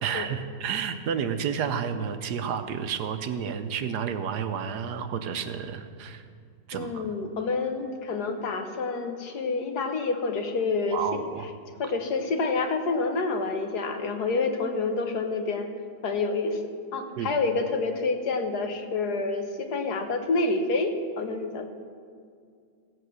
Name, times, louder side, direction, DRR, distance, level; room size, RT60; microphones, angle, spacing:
voice 1, 0.0-6.2 6.7-7.1 10.9-11.4 11.8-11.9 17.2-17.3, right 7 dB, 90° right, 9 dB, 1.4 m, -31 dB
voice 2, 6.7-11.2 11.8-15.7 16.0-16.6 16.9-21.7, left 3 dB, 75° left, 5 dB, 1.7 m, -28 dB
16.5 x 8.0 x 6.3 m, 2.2 s
omnidirectional pair, 1.7 m